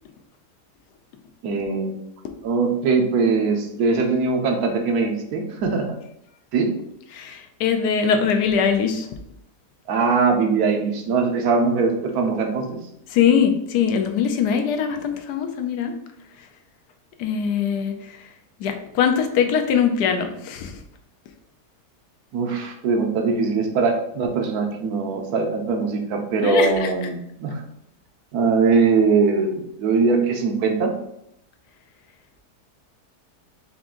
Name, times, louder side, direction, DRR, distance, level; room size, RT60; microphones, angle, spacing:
voice 1, 1.4-1.9 2.4-5.9 6.5-6.7 9.9-12.8 22.3-27.6 28.3-30.9, right 4 dB, 70° right, 3 dB, 1.1 m, -21 dB
voice 2, 7.1-9.1 13.1-16.0 17.2-18.2 18.6-20.8 26.4-26.9, left 7 dB, 80° left, 5 dB, 1.2 m, -22 dB
4.9 x 2.5 x 3.6 m, 0.77 s
omnidirectional pair, 1.8 m